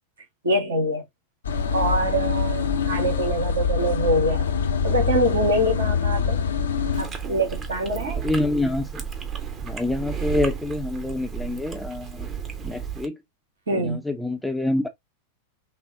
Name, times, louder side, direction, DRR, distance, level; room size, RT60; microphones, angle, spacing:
voice 1, 0.4-1.0 1.7-4.5 4.8-6.4 7.0-8.2 13.7-14.0, right 1 dB, 70° right, 1.7 m, -24 dB
sound 1, 1.4-7.0, left 6 dB, 70° left, 0.6 m, -24 dB
Chewing mastication, 6.9-13.1, right 7 dB, 25° right, 0.9 m, -33 dB
voice 2, 8.1-9.1 9.6-12.3 12.6-13.2 13.7-14.9, left 2 dB, ahead, 0.6 m, -27 dB
5.8 x 2.1 x 2.7 m
figure-of-eight pair, 90°, 0 cm